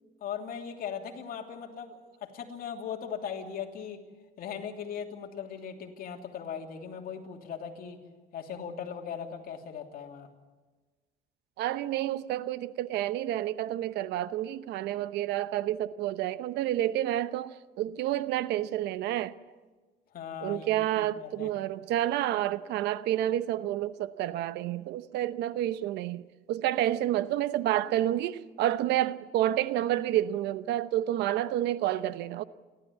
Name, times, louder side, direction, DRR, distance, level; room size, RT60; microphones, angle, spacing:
voice 1, 0.2-4.0 4.4-8.0 8.3-10.3 20.1-20.7 20.9-21.5, left 7 dB, 60° left, 2.9 m, -39 dB
voice 2, 11.6-19.3 20.4-32.4, right 13 dB, 85° right, 0.9 m, -29 dB
29.0 x 12.5 x 8.4 m
cardioid pair, 110°, 17 cm